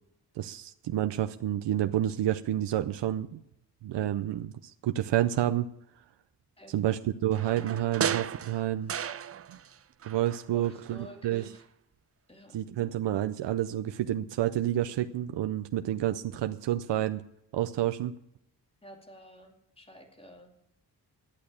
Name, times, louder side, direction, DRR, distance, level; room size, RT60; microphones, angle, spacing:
voice 1, 0.4-3.4 3.8-5.7 6.7-8.9 9.5-9.6 10.1-11.0 11.2-11.5 12.5-17.2 17.5-18.2, right 12 dB, 90° right, 9 dB, 0.6 m, -29 dB
sound 1, 7.3-9.8 10.0-11.1 11.4-11.5, right 8 dB, 35° right, 0.4 m, -35 dB
voice 2, 10.5-11.7 12.3-12.6 18.8-20.5, right 1 dB, 15° left, 3 dB, 2.4 m, -51 dB
12.0 x 8.6 x 8.6 m, 0.79 s
wide cardioid pair, 125°, 41 cm